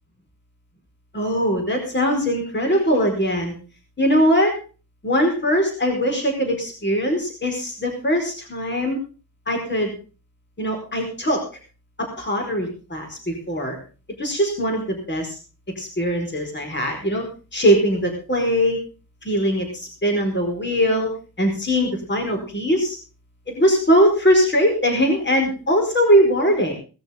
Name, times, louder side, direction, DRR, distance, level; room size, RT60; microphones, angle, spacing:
voice 1, 1.1-3.6 4.0-4.5 5.0-9.0 9.5-9.9 10.6-11.4 12.0-13.8 14.2-15.3 15.8-17.2 17.5-18.8 19.2-21.1 21.4-23.0 23.5-26.7, equal, 30° left, 2 dB, 4.9 m, -21 dB
18.5 x 13.5 x 3.7 m, 0.35 s
wide cardioid pair, 150°, 37 cm